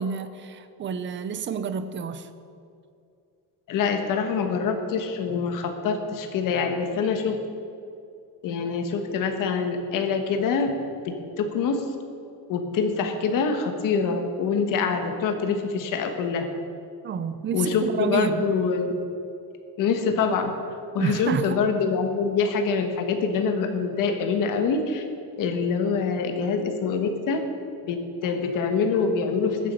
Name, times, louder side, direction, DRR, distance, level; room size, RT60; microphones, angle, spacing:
voice 1, 0.0-2.3 17.0-18.4 20.9-21.6, right 6 dB, 25° right, 11 dB, 0.6 m, -29 dB
voice 2, 3.7-7.4 8.4-10.7 11.0-11.8 12.5-16.5 17.5-19.0 19.8-20.5 20.9-25.0 25.4-27.4 27.8-29.7, left 5 dB, 45° left, 5 dB, 1.4 m, -25 dB
20.0 x 7.3 x 5.5 m, 2.5 s
cardioid pair, 155°, 45 cm